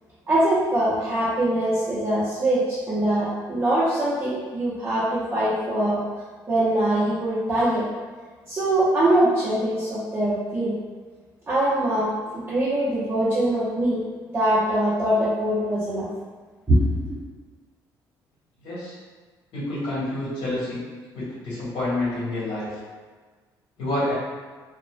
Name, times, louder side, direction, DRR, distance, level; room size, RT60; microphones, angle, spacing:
voice 1, 0.3-6.0 6.5-7.9 8.5-10.8 11.5-14.0 14.3-16.1 16.7-17.2, right 1 dB, 25° right, -10 dB, 0.7 m, -23 dB
voice 2, 18.6-18.9 19.5-20.8 21.1-22.7 23.8-24.1, left 1 dB, 75° left, -10 dB, 1.4 m, -28 dB
2.4 x 2.2 x 2.2 m, 1.5 s
cardioid pair, 80°, 9 cm